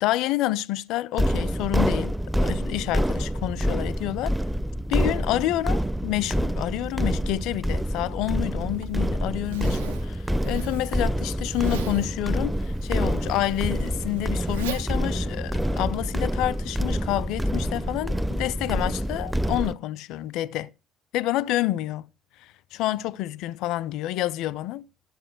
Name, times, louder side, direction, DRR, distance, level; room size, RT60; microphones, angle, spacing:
voice 1, 0.0-2.2 2.4-4.3 4.9-20.7 21.1-22.1 22.4-24.9, left 15 dB, 60° left, 0.5 m, -28 dB
sound 1, 1.2-19.7, equal, 5° right, 0.5 m, -27 dB
Zipper (clothing), 8.7-16.1, right 8 dB, 75° right, 0.7 m, -41 dB
13.0 x 7.4 x 6.1 m
figure-of-eight pair, 50°, 0 cm